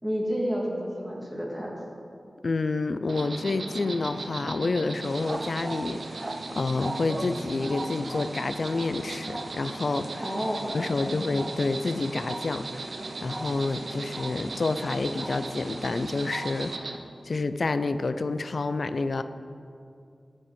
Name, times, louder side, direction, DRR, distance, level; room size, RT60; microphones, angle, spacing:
voice 1, 0.0-1.8 10.2-11.3, equal, 10° right, -3 dB, 2.7 m, -31 dB
voice 2, 2.4-10.2 10.7-13.0 13.2-16.9 17.2-19.2, left 3 dB, 70° left, 12 dB, 0.4 m, -29 dB
Insect, 3.1-17.0, right 3 dB, 80° right, 0.7 m, -38 dB
sound 1, 5.0-16.8, right 2 dB, 40° right, 0.5 m, -41 dB
14.5 x 5.4 x 5.1 m, 2.5 s
cardioid pair, 45°, 0 cm